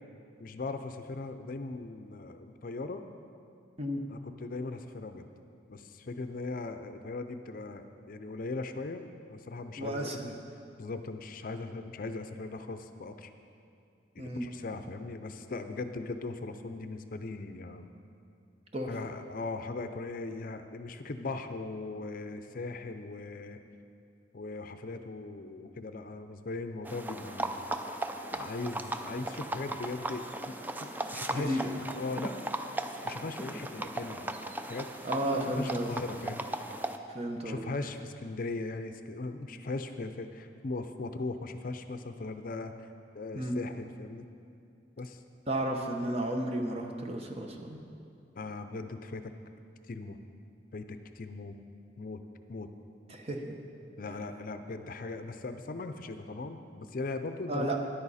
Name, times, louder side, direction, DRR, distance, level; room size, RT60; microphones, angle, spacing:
voice 1, 0.4-3.0 4.1-5.3 5.7-9.0 9.3-10.3 10.8-13.3 14.3-17.9 18.9-23.6 24.3-27.6 28.3-31.6 31.9-32.4 33.0-34.4 34.7-34.9 35.5-36.5 37.4-42.7 43.1-44.3 45.0-45.2 48.4-49.3 49.9-50.2 50.7-51.5 52.0-52.2 52.5-52.7 54.0-57.7, left 3 dB, 50° left, 8 dB, 0.5 m, -39 dB
voice 2, 9.8-10.3 14.2-14.5 18.7-18.9 31.3-31.7 35.0-35.9 37.1-37.6 43.3-43.6 45.5-47.8 53.1-53.5 57.5-57.8, right 1 dB, 35° right, 3 dB, 1.0 m, -33 dB
sound 1, 26.8-37.0, right 1 dB, 10° right, 0.4 m, -37 dB
13.5 x 10.5 x 4.2 m, 2.5 s
head